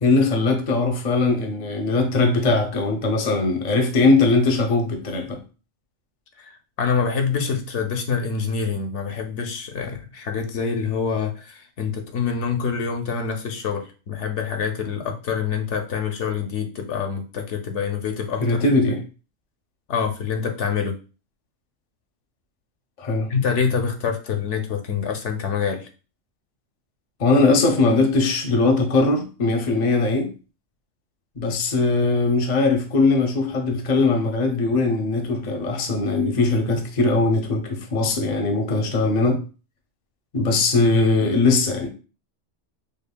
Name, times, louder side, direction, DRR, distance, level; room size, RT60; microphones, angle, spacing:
voice 1, 0.0-5.4 18.4-19.0 23.0-23.3 27.2-30.3 31.4-39.4 40.3-41.9, left 3 dB, 45° left, 4 dB, 0.7 m, -20 dB
voice 2, 6.4-18.6 19.9-21.0 23.3-25.9, left 6 dB, 75° left, 4 dB, 0.9 m, -26 dB
5.2 x 2.3 x 2.2 m, 0.33 s
omnidirectional pair, 1.2 m